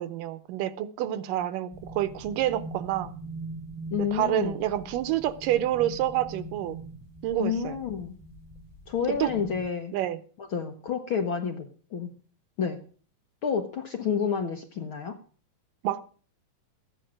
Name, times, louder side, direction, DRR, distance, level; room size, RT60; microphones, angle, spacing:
voice 1, 0.0-3.1 4.0-6.8 7.2-7.8 9.2-9.3 9.9-10.2 15.8-16.0, right 13 dB, 80° right, 2.4 m, -28 dB
sound 1, 1.7-9.7, right 2 dB, 40° left, 1.5 m, -42 dB
voice 2, 3.9-4.6 7.4-8.2 8.9-10.0 10.5-12.1 12.6-12.8 13.4-15.2, left 7 dB, 75° left, 1.2 m, -29 dB
14.5 x 9.1 x 6.3 m
omnidirectional pair, 3.9 m